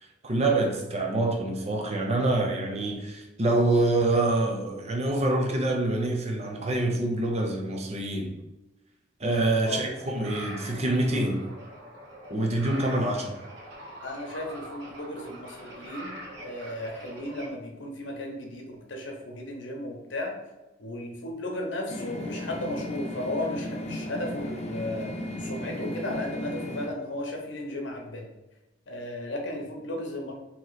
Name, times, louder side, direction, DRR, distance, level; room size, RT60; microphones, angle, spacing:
voice 1, 0.2-8.3 9.2-11.4 12.3-13.4, right 2 dB, 35° right, 0.6 m, -26 dB
sound 1, 9.5-17.5, right 1 dB, 65° right, 1.1 m, -43 dB
voice 2, 14.0-20.3 20.8-25.1 25.4-28.2 28.9-30.3, left 1 dB, 70° left, 0.9 m, -35 dB
sound 2, 21.9-26.9, left 1 dB, 35° left, 0.5 m, -35 dB
3.1 x 2.9 x 3.9 m
head